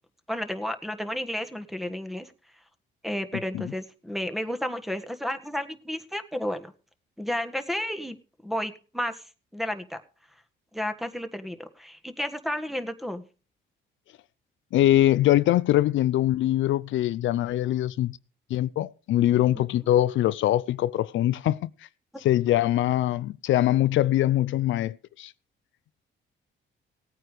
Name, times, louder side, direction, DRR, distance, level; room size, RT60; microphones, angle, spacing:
voice 1, 0.3-2.3 3.0-6.7 7.2-8.2 8.4-9.2 9.5-10.0 10.7-13.2 19.5-19.7, equal, ahead, 1.5 m, -32 dB
voice 2, 14.7-18.2 18.5-21.7 22.2-25.3, left 13 dB, 75° left, 0.5 m, -23 dB
17.0 x 9.1 x 4.9 m
cardioid pair, 90°, 20 cm